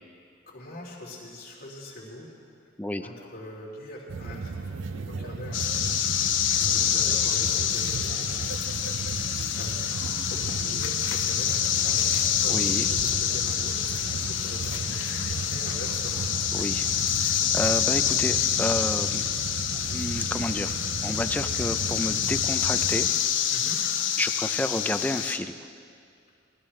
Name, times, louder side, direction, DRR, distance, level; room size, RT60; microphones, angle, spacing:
voice 1, 0.5-2.3 2.6-2.7 3.0-8.9 9.5-16.3 23.5-23.8 26.3-26.4, left 1 dB, 55° left, -4 dB, 3.1 m, -43 dB
sound 1, 4.1-23.1, right 4 dB, 80° right, 0.5 m, -35 dB
sound 2, 5.5-25.4, left 9 dB, 75° left, 0.7 m, -27 dB
voice 2, 12.5-12.9 16.5-16.9 17.2-19.3 19.9-20.7 21.0-23.1 24.2-25.5, left 1 dB, 10° left, 9 dB, 0.4 m, -30 dB
20.0 x 13.5 x 3.2 m, 2.3 s
head